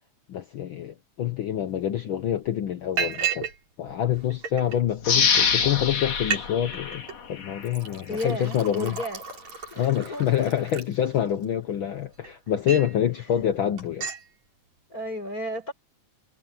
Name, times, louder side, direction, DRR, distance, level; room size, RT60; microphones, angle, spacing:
voice 1, 0.3-3.5 3.8-7.0 7.3-9.0 9.8-14.1, left 10 dB, 80° left, 1.1 m, -26 dB
Liquid, 1.8-1.9 2.2-2.5 3.0-3.6 3.9-4.8 5.4-5.5 5.8-5.9 6.2-6.5 6.7-7.2 7.6-11.4 12.0-13.0 13.4-13.5 13.8-14.2, right 7 dB, 65° right, 6.2 m, -33 dB
sound 1, 5.0-7.7 8.2-8.3, left 6 dB, 60° left, 3.6 m, -25 dB
voice 2, 8.1-9.2 9.7-10.3 14.9-15.7, left 1 dB, 25° left, 7.6 m, -33 dB
omnidirectional pair, 3.5 m